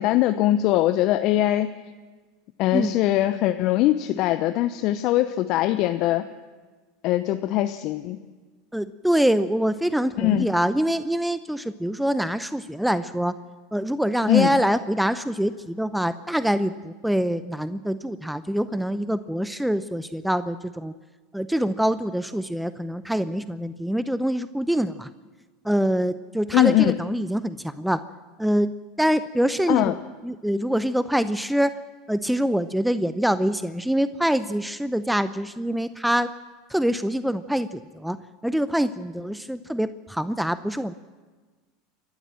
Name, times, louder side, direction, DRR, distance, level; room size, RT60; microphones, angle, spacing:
voice 1, 0.0-1.7 2.6-6.2 7.0-8.2 10.2-10.5 14.3-14.5 26.5-27.0 29.7-29.9, left 14 dB, 55° left, 10 dB, 0.8 m, -21 dB
voice 2, 8.7-13.4 13.7-20.9 21.3-25.1 25.6-28.0 28.4-28.7 29.0-30.0 30.2-31.7 32.1-36.3 36.7-38.2 38.4-40.9, equal, 5° right, 13 dB, 0.7 m, -25 dB
28.5 x 12.5 x 7.5 m, 1.3 s
hypercardioid pair, 85°, 0 cm